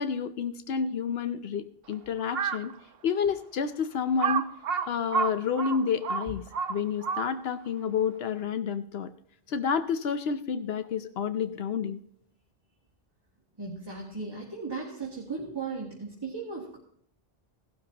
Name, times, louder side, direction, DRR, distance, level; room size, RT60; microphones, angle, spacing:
voice 1, 0.0-2.7 3.0-4.5 4.9-6.4 6.7-9.1 9.5-12.0, left 6 dB, 80° left, 11 dB, 0.9 m, -29 dB
Crow, 2.2-2.7 3.3-3.4 4.2-7.6, right 6 dB, 70° right, 1.0 m, -30 dB
voice 2, 13.6-16.8, right 4 dB, 25° right, -5 dB, 2.2 m, -36 dB
17.0 x 12.0 x 2.9 m, 0.65 s
omnidirectional pair, 1.0 m